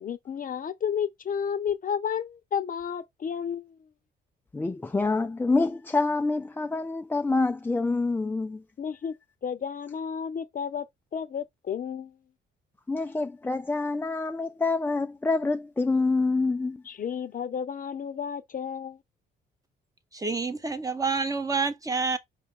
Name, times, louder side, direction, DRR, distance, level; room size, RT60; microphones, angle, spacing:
voice 1, 0.0-3.9 8.8-9.1 9.4-10.8 11.1-12.1 16.9-19.0, left 7 dB, 45° left, 0.7 m, -32 dB
voice 2, 4.5-8.6 12.9-16.8, left 3 dB, 10° left, 0.3 m, -26 dB
voice 3, 20.1-22.2, right 4 dB, 15° right, 0.8 m, -28 dB
5.0 x 2.4 x 3.7 m
cardioid pair, 90°, 20 cm